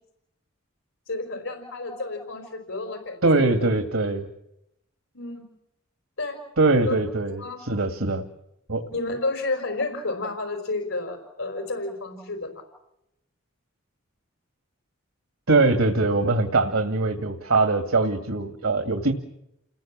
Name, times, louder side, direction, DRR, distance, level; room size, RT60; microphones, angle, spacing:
voice 1, 1.1-3.5 5.1-5.4 6.2-6.4 6.9-7.0 7.4-7.6 8.9-12.5, left 2 dB, 75° left, 5 dB, 4.7 m, -31 dB
voice 2, 3.2-4.3 6.6-8.3 8.7-8.8 15.5-19.1, right 3 dB, 90° right, 7 dB, 2.3 m, -22 dB
29.5 x 20.5 x 7.5 m, 0.82 s
head